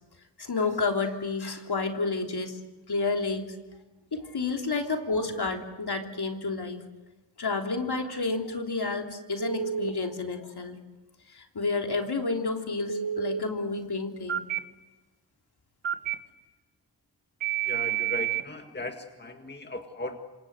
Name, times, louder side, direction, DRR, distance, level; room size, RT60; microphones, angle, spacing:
voice 1, 0.4-2.6 2.9-3.4 4.1-6.8 7.4-10.8 11.3-14.4, left 3 dB, 55° left, 3 dB, 3.4 m, -30 dB
Telephone, 9.4-9.9 12.9-13.4 14.3-14.6 15.8-16.1 17.4-18.4, right 10 dB, 85° right, 1.8 m, -29 dB
voice 2, 17.6-20.2, left 2 dB, 20° left, 5 dB, 2.0 m, -37 dB
27.0 x 26.5 x 8.1 m, 1.1 s
wide cardioid pair, 100°, 45 cm